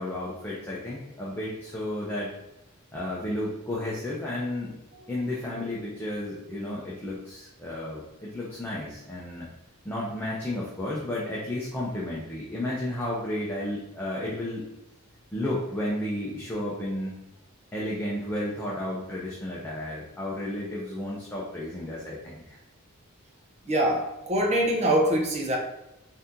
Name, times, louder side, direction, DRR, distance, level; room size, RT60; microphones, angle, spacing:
voice 1, 0.0-2.3 2.9-4.7 5.1-9.5 9.8-14.7 15.3-17.2 17.7-22.6, left 1 dB, 10° left, -6 dB, 0.7 m, -32 dB
voice 2, 23.7-25.6, right 1 dB, 30° right, 0 dB, 0.8 m, -24 dB
4.2 x 2.8 x 3.6 m, 0.90 s
head